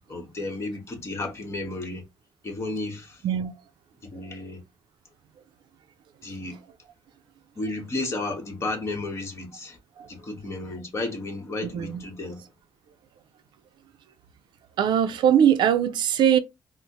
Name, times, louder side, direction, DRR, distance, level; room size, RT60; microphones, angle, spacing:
voice 1, 0.1-2.0 2.4-3.2 4.1-4.6 6.2-6.6 7.6-9.8 10.1-12.4, left 2 dB, 35° left, 1.1 m, -33 dB
voice 2, 14.8-16.4, right 9 dB, 75° right, 0.4 m, -21 dB
4.0 x 2.0 x 2.9 m
cardioid pair, 115°, 8 cm